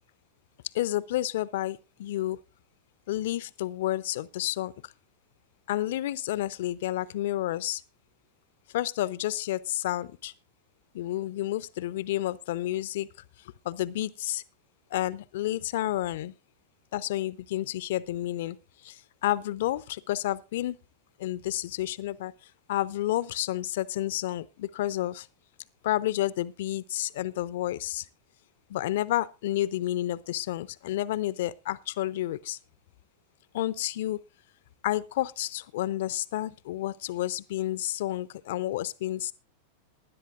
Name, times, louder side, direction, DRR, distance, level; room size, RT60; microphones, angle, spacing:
voice 1, 0.7-2.4 3.1-4.9 5.7-7.8 8.7-10.3 10.9-13.1 13.6-14.4 14.9-16.3 16.9-18.6 18.8-20.8 21.2-22.3 22.7-25.3 25.8-28.1 28.7-32.6 33.5-34.2 34.8-39.3, left 14 dB, 55° left, 0.6 m, -30 dB
19.5 x 10.5 x 2.5 m
figure-of-eight pair, 90°, 0 cm